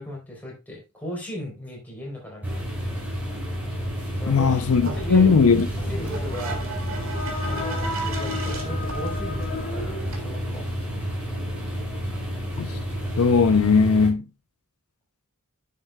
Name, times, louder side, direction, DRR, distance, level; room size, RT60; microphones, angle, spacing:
voice 1, 0.0-2.7 4.2-5.3 5.9-6.6 7.4-10.7, left 1 dB, 10° left, 3.8 m, -37 dB
sound 1, 2.4-14.1, equal, 10° right, 4.9 m, -30 dB
voice 2, 4.3-5.7 12.6-12.8 13.2-14.3, left 5 dB, 80° left, 0.6 m, -18 dB
sound 2, 4.3-10.2, right 2 dB, 65° right, 1.9 m, -36 dB
sound 3, 6.8-10.7, left 2 dB, 50° left, 2.2 m, -34 dB
9.9 x 6.9 x 2.3 m
head